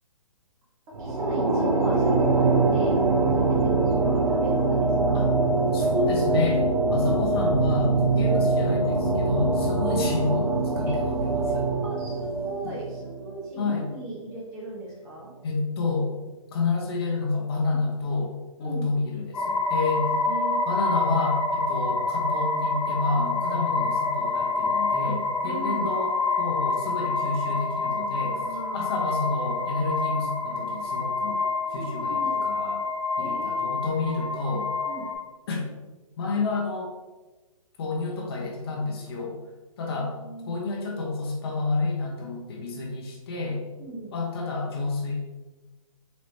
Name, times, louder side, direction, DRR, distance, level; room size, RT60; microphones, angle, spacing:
sound 1, 0.9-13.5, right 3 dB, 85° right, 0.9 m, -23 dB
voice 1, 1.0-2.9 3.3-5.1 10.9-11.0 11.8-15.3 17.7-17.8 18.6-18.9 20.3-20.7 25.4-26.0 28.3-28.9 31.7-32.5 33.2-34.0 34.9-35.1 39.9-40.6 43.8-44.1, right 2 dB, 20° right, -5 dB, 0.9 m, -38 dB
voice 2, 5.7-11.7 13.6-13.8 15.4-16.1 16.5-18.3 18.6-20.1 20.7-28.4 28.7-31.4 31.7-32.8 33.2-34.7 35.5-35.6 36.2-36.9 37.8-39.4 39.8-40.1 40.5-43.6 44.1-45.2, left 3 dB, 45° left, -1 dB, 0.9 m, -29 dB
sound 2, 19.3-35.2, left 3 dB, 75° left, 0.8 m, -27 dB
4.1 x 3.0 x 3.2 m, 1.2 s
hypercardioid pair, 145°, 18 cm